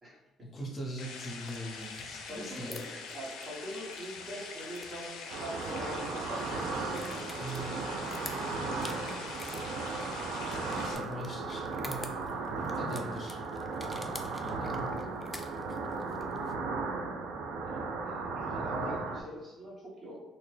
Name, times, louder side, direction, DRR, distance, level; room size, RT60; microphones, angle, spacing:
voice 1, 0.4-2.8 7.4-7.8 10.7-12.2 12.7-13.4 13.8-14.9, equal, 40° left, -2 dB, 0.7 m, -41 dB
sound 1, 1.0-10.9, left 5 dB, 80° left, 0.4 m, -44 dB
sound 2, 1.1-16.5, left 1 dB, 10° left, 0.4 m, -50 dB
voice 2, 2.3-7.2 9.1-9.3 17.5-20.2, equal, 30° right, -4 dB, 1.2 m, -43 dB
sound 3, 5.3-19.2, right 3 dB, 85° right, 0.4 m, -36 dB
3.0 x 2.1 x 3.2 m, 1.2 s
supercardioid pair, 75°, 0 cm